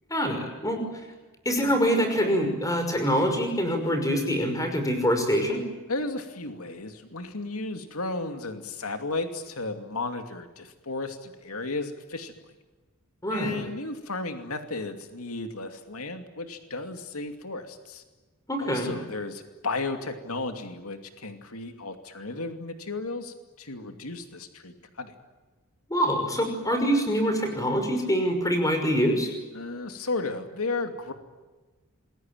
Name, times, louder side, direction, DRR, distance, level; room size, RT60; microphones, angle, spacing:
voice 1, 0.1-0.8 1.5-5.6 13.2-13.7 18.5-18.9 25.9-29.3, equal, 15° left, 5 dB, 5.8 m, -25 dB
voice 2, 5.9-12.3 13.3-18.0 18.6-25.1 29.5-31.1, left 3 dB, 85° left, 6 dB, 2.6 m, -34 dB
27.5 x 21.0 x 9.2 m, 1.2 s
head